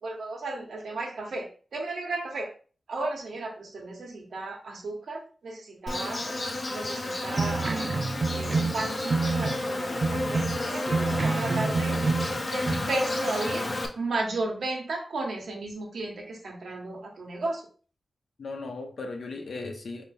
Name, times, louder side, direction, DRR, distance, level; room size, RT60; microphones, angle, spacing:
voice 1, 0.0-2.5 2.9-6.4 6.7-7.8 8.3-12.0 12.5-13.7 13.9-17.6, right 2 dB, 80° right, 1 dB, 1.1 m, -34 dB
Insect, 5.9-13.9, left 2 dB, 35° left, 0.6 m, -31 dB
sound 1, 7.3-9.7 10.0-12.8, right 4 dB, 45° right, 0.3 m, -28 dB
voice 2, 11.7-12.2 18.4-20.1, left 3 dB, 70° left, 4 dB, 0.8 m, -37 dB
4.1 x 2.9 x 3.5 m, 0.40 s
wide cardioid pair, 125°, 0 cm